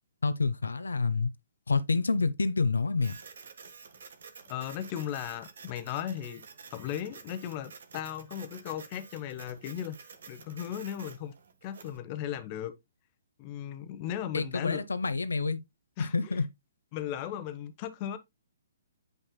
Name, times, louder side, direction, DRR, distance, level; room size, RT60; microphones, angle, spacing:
voice 1, 0.2-1.3 1.7-3.1 14.3-15.6 16.0-16.4, left 4 dB, 85° left, 0.8 m, -28 dB
Printer, 3.0-12.0, right 5 dB, 65° right, 1.4 m, -50 dB
voice 2, 4.5-6.4 6.7-10.0 10.3-11.3 11.6-12.7 13.4-14.8 16.0-16.4 16.9-18.2, left 10 dB, 35° left, 1.1 m, -36 dB
9.0 x 5.4 x 2.3 m
hypercardioid pair, 135°, 0 cm